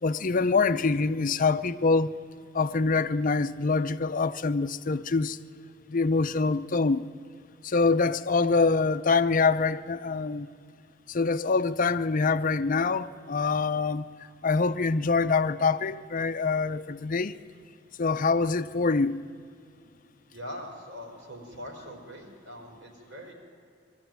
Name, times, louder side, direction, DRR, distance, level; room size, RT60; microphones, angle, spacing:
voice 1, 0.0-2.2 2.5-5.4 5.9-7.1 7.6-10.5 11.1-14.1 14.4-17.4 18.0-19.2, left 4 dB, 45° left, 0.6 m, -25 dB
voice 2, 20.3-23.3, equal, 75° right, 4.6 m, -42 dB
21.5 x 13.0 x 9.1 m
head